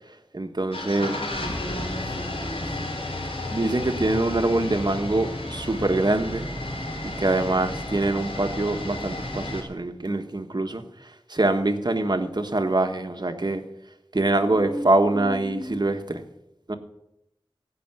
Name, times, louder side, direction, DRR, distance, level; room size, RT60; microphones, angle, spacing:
voice 1, 0.3-1.1 3.5-6.5 7.0-13.6 14.1-16.2 16.7-16.8, right 2 dB, 50° right, 6 dB, 1.4 m, -24 dB
sound 1, 0.7-9.6, left 1 dB, 80° left, 3.3 m, -32 dB
voice 2, 1.0-2.7 14.4-15.8, equal, 60° left, 0 dB, 3.4 m, -35 dB
15.5 x 5.8 x 9.2 m, 0.85 s
wide cardioid pair, 45°, 9 cm